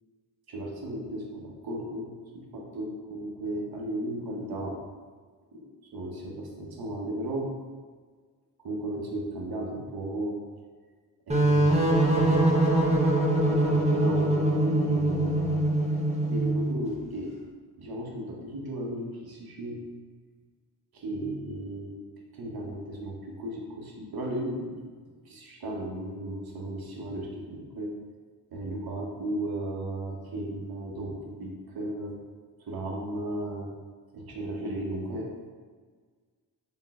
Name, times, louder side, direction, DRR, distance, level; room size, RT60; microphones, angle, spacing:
voice 1, 0.5-4.8 5.5-7.5 8.6-10.4 11.3-12.5 13.2-15.6 16.3-17.3 17.8-19.9 20.9-22.0 22.3-24.8 25.2-28.0 28.5-32.2 32.6-33.7 34.1-35.3, right 1 dB, 55° right, -1 dB, 1.0 m, -35 dB
sound 1, 11.3-16.8, right 1 dB, 15° right, 0.9 m, -23 dB
3.8 x 3.6 x 2.4 m, 1.5 s
supercardioid pair, 40°, 44 cm